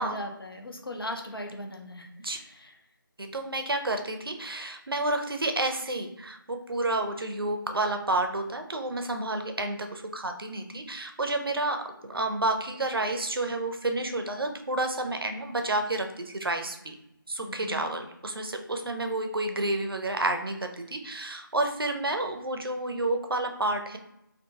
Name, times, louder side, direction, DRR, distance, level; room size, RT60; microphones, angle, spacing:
voice 1, 0.0-2.8 17.4-17.9, left 1 dB, 90° left, 3 dB, 0.6 m, -38 dB
voice 2, 3.2-11.8 12.0-16.9 17.3-24.0, right 2 dB, 85° right, 5 dB, 0.5 m, -30 dB
2.8 x 2.4 x 2.3 m, 0.80 s
figure-of-eight pair, 160°, 12 cm